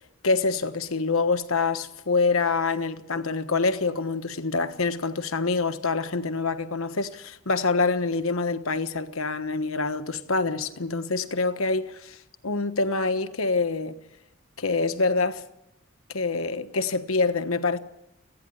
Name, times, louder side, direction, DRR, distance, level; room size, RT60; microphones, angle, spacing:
voice 1, 0.2-12.2 12.4-14.0 14.6-15.5 16.1-17.8, left 3 dB, 75° left, 1.3 m, -26 dB
30.0 x 10.0 x 9.9 m
head